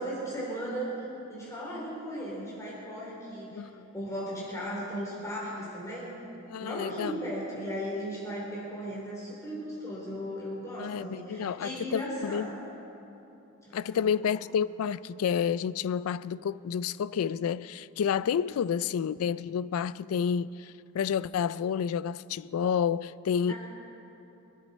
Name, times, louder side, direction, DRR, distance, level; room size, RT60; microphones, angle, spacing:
voice 1, 0.0-3.7 3.9-6.2 6.6-12.6 13.6-14.1 23.5-23.6, equal, 15° left, 3.4 m, -36 dB
voice 2, 3.5-3.9 6.5-7.2 10.8-12.5 13.7-23.5, left 7 dB, 80° left, 0.3 m, -30 dB
25.0 x 10.0 x 4.2 m
head